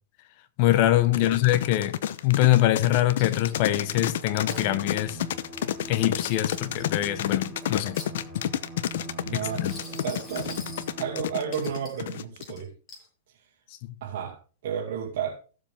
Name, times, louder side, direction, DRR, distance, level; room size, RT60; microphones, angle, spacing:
voice 1, 0.6-2.0 2.2-5.2 5.9-8.0 9.3-9.7 13.8-13.9, left 14 dB, 45° left, 1.2 m, -23 dB
sound 1, 1.1-12.6, left 11 dB, 70° left, 0.8 m, -30 dB
voice 2, 1.1-1.5 9.3-9.7 10.0-10.6 11.0-12.7 14.0-15.4, right 8 dB, 60° right, 2.6 m, -32 dB
Coin (dropping), 3.2-3.8 4.2-4.7 5.8-7.0 7.6-8.6 9.5-10.9 11.5-12.0 12.4-13.1, left 2 dB, 20° left, 7.3 m, -45 dB
Bowed string instrument, 3.3-11.9, right 2 dB, ahead, 3.6 m, -42 dB
16.0 x 7.4 x 3.6 m
hypercardioid pair, 145°, 0 cm